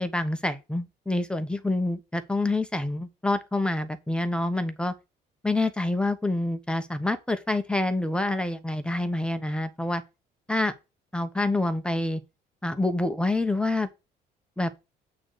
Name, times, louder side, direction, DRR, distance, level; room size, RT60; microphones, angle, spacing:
voice 1, 0.0-4.9 5.4-10.0 10.5-10.7 11.1-12.2 12.6-13.9 14.6-14.7, left 2 dB, 5° left, 1.0 m, -27 dB
8.5 x 3.9 x 6.8 m
cardioid pair, 110°, 17 cm